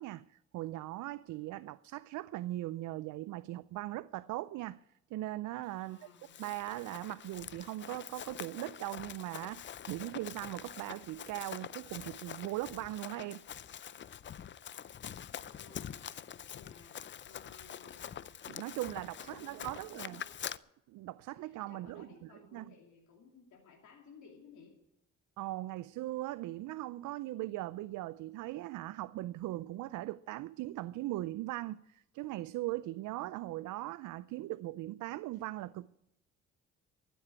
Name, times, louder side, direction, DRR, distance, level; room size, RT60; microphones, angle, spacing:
voice 1, 0.0-4.8 5.1-6.0 6.4-13.4 18.5-20.2 20.9-22.1 22.5-22.7 25.4-35.9, right 16 dB, 80° right, 0.5 m, -39 dB
voice 2, 5.8-6.3 15.4-16.1 16.5-18.2 18.7-20.4 21.4-24.7, left 5 dB, 75° left, 2.8 m, -58 dB
Run, 6.0-20.6, left 9 dB, 40° left, 0.5 m, -46 dB
14.5 x 7.8 x 9.7 m
cardioid pair, 90°, 30 cm